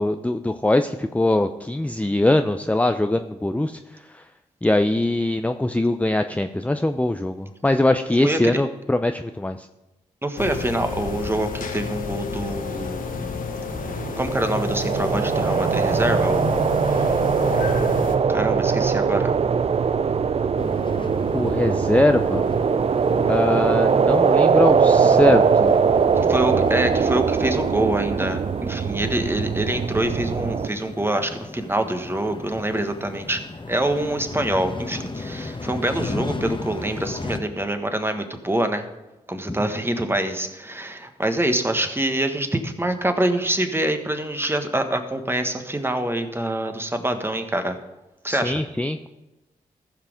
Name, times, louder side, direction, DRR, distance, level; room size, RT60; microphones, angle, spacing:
voice 1, 0.0-3.8 4.1-4.2 4.6-9.7 21.3-22.5 23.3-25.8 39.5-39.6 48.3-49.1, left 1 dB, 10° left, 8 dB, 0.5 m, -22 dB
voice 2, 8.2-8.6 10.2-13.3 14.2-16.5 18.3-19.3 26.1-33.4 33.7-38.9 39.3-47.8 48.2-48.6, right 1 dB, 15° right, 7 dB, 1.5 m, -25 dB
sound 1, 10.4-18.2, left 5 dB, 65° left, 1.1 m, -30 dB
sound 2, 13.7-30.7, right 6 dB, 40° right, 0.5 m, -21 dB
sound 3, 20.6-37.4, left 3 dB, 35° left, 1.2 m, -35 dB
14.5 x 5.9 x 5.0 m, 1.0 s
supercardioid pair, 45°, 15 cm